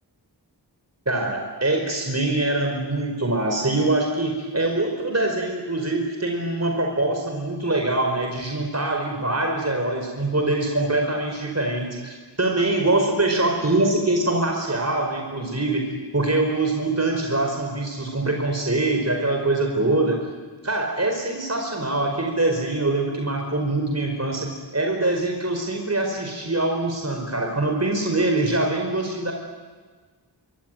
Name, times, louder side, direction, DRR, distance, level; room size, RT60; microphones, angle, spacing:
voice 1, 1.0-15.9 16.1-20.2 20.6-24.5 24.7-29.3, right 2 dB, 35° right, 2 dB, 5.1 m, -24 dB
27.0 x 24.0 x 9.3 m, 1.4 s
wide cardioid pair, 65°, 43 cm